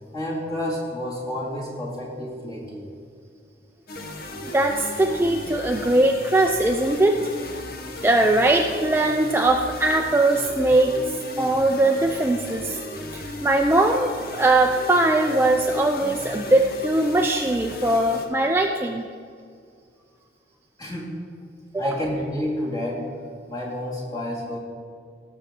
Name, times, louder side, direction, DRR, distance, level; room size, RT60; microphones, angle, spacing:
voice 1, 0.1-2.9 20.8-21.1 21.7-24.6, left 1 dB, 20° left, -5 dB, 2.4 m, -30 dB
sound 1, 3.9-18.3, left 1 dB, 60° left, 1.0 m, -36 dB
voice 2, 4.4-7.3 8.0-11.0 11.4-12.8 13.1-19.1 21.7-22.0, right 2 dB, 15° right, 3 dB, 0.4 m, -21 dB
17.0 x 6.9 x 3.7 m, 2.2 s
head